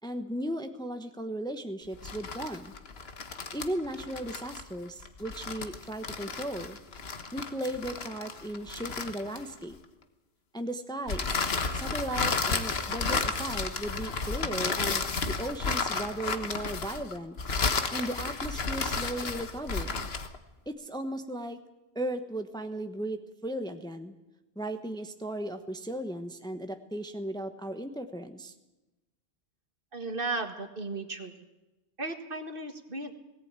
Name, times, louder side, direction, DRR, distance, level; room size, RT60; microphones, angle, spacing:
voice 1, 0.0-2.7 3.5-6.8 7.3-9.8 10.5-11.4 11.7-15.0 15.4-17.4 17.9-20.1 20.7-21.6 21.9-24.1 24.6-28.5, right 1 dB, 5° left, 7 dB, 1.1 m, -36 dB
sound 1, 1.9-9.7 11.1-20.4, left 4 dB, 65° left, 1.6 m, -32 dB
voice 2, 29.9-31.5 32.0-33.1, right 2 dB, 55° right, 6 dB, 2.0 m, -35 dB
18.0 x 18.0 x 9.0 m, 1.0 s
omnidirectional pair, 1.1 m